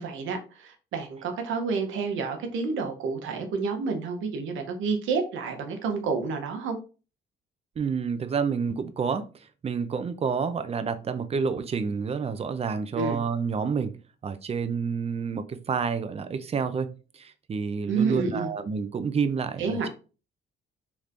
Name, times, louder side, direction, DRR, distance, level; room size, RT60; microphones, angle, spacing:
voice 1, 0.0-6.8 12.9-13.2 17.9-18.5 19.6-20.0, right 4 dB, 80° right, 5 dB, 0.9 m, -29 dB
voice 2, 7.8-9.3 9.6-13.9 14.2-20.0, right 6 dB, 30° right, 11 dB, 0.4 m, -29 dB
3.3 x 3.1 x 2.5 m, 0.34 s
cardioid pair, 90°, 20 cm